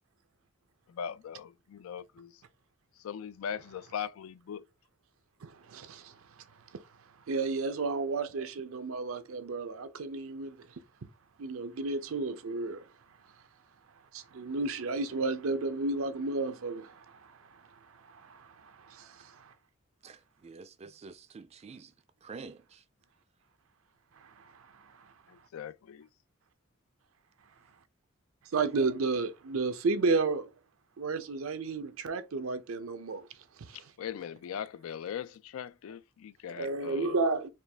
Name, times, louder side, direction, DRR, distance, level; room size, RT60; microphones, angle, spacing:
voice 1, 0.9-2.3 3.0-4.6 25.3-26.0 34.0-37.3, left 8 dB, 85° left, 0.3 m, -40 dB
voice 2, 5.4-6.1 7.3-10.7 11.4-12.8 14.1-17.2 18.1-19.5 24.4-24.5 28.5-30.5 31.0-33.3 33.6-33.8 36.6-37.5, right 3 dB, 80° right, 0.6 m, -32 dB
voice 3, 20.0-21.9 22.2-22.8, right 4 dB, 30° right, 0.4 m, -48 dB
4.4 x 2.3 x 3.3 m
head